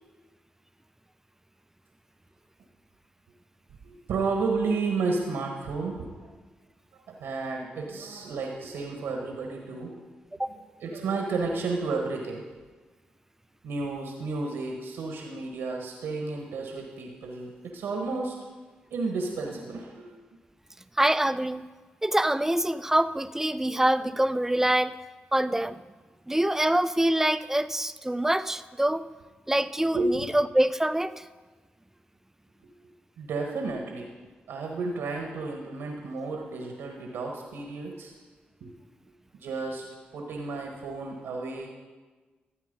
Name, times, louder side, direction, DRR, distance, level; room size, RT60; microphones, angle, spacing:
voice 1, 3.8-6.3 6.9-9.9 10.4-12.4 13.6-18.3 18.9-20.1 29.9-30.3 33.2-34.1 34.5-38.1 38.6-38.7 39.3-39.8 40.1-41.7, right 3 dB, 90° right, 2 dB, 1.5 m, -32 dB
voice 2, 21.0-21.6 22.0-25.0 25.3-25.8 26.3-29.0 29.5-31.3, right 1 dB, 10° right, 13 dB, 0.6 m, -25 dB
13.5 x 8.3 x 5.4 m, 1.3 s
supercardioid pair, 45°, 4 cm